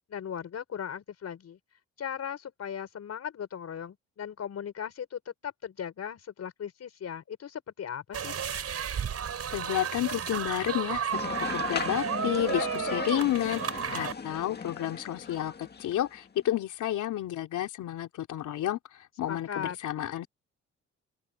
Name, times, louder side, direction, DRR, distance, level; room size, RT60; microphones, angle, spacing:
voice 1, 0.1-1.6 2.0-8.4 19.3-19.8, left 8 dB, 55° left, 5.3 m, -38 dB
sound 1, 8.1-14.1, right 7 dB, 55° right, 7.2 m, -33 dB
voice 2, 9.5-18.8 19.2-20.3, left 12 dB, 80° left, 3.4 m, -31 dB
sound 2, 11.1-16.2, left 5 dB, 35° left, 1.9 m, -36 dB
open air
cardioid pair, 90°, 30 cm